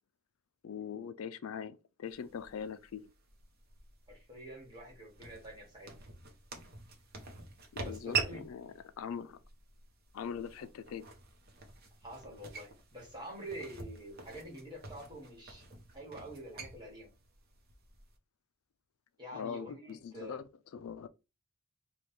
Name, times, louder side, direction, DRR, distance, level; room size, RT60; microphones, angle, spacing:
voice 1, 0.6-3.1 7.7-9.4 10.1-11.1 19.3-21.1, left 7 dB, 80° left, 0.4 m, -42 dB
sound 1, 2.1-18.2, right 5 dB, 50° right, 0.8 m, -45 dB
voice 2, 4.1-5.9 7.8-8.4 12.0-15.7 15.9-17.1 19.2-20.4, right 1 dB, 20° right, 1.6 m, -47 dB
3.2 x 2.3 x 4.2 m
head